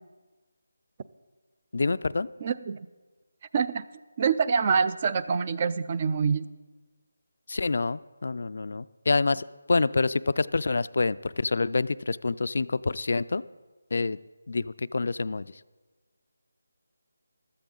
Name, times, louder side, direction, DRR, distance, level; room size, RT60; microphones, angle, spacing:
voice 1, 1.7-2.3 7.5-13.4 13.9-14.2 14.5-15.5, left 3 dB, 55° left, 16 dB, 0.3 m, -27 dB
voice 2, 2.4-2.8 3.5-3.8 4.2-6.5, right 6 dB, 25° right, 14 dB, 0.3 m, -25 dB
15.0 x 13.0 x 3.8 m, 1.3 s
figure-of-eight pair, 175°, 0 cm